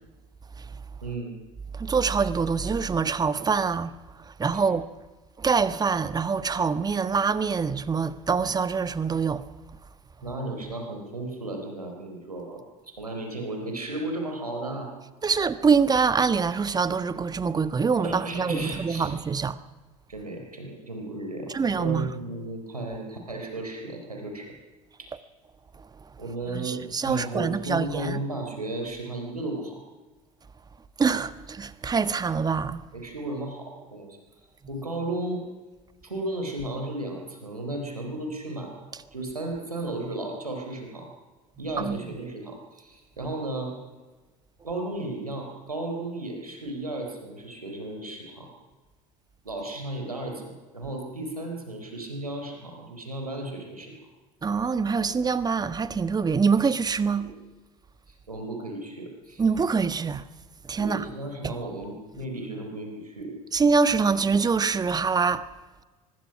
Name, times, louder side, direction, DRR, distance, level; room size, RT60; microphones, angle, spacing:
voice 1, 1.0-1.3 4.5-4.6 10.2-14.9 18.0-19.1 20.1-24.5 25.0-25.1 26.2-29.8 32.9-34.2 34.7-35.4 36.0-41.1 41.6-43.7 44.6-48.5 49.4-53.9 57.2-57.3 58.1-59.4 60.8-63.3, right 2 dB, 85° right, 4.1 m, -34 dB
voice 2, 1.7-3.9 4.2-4.8 5.4-9.5 15.2-19.6 21.5-22.1 26.5-28.2 31.0-32.8 41.8-42.0 54.4-57.2 59.4-60.2 60.6-61.0 61.4-61.5 63.5-65.4, right 5 dB, 20° right, 1.4 m, -25 dB
24.5 x 21.0 x 6.0 m
figure-of-eight pair, 70°, 19 cm